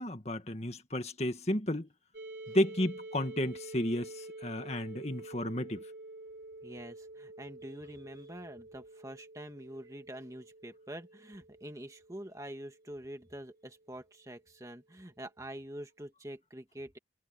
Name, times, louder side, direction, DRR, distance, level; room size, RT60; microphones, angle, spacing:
voice 1, 0.0-1.9 2.5-5.8, left 1 dB, 35° left, 2.0 m, -32 dB
sound 1, 2.1-13.8, right 2 dB, 70° right, 4.9 m, -49 dB
voice 2, 6.6-17.0, right 1 dB, 20° right, 2.1 m, -46 dB
head